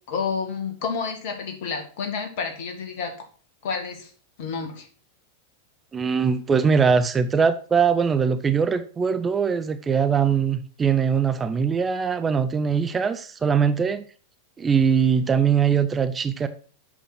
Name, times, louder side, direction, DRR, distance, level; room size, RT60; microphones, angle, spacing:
voice 1, 0.1-3.1 3.6-4.1 4.4-4.9, left 5 dB, 50° left, 2.2 m, -30 dB
voice 2, 5.9-14.0 14.6-16.5, right 6 dB, 20° right, 0.6 m, -21 dB
8.1 x 6.0 x 5.9 m
figure-of-eight pair, 90°, 0 cm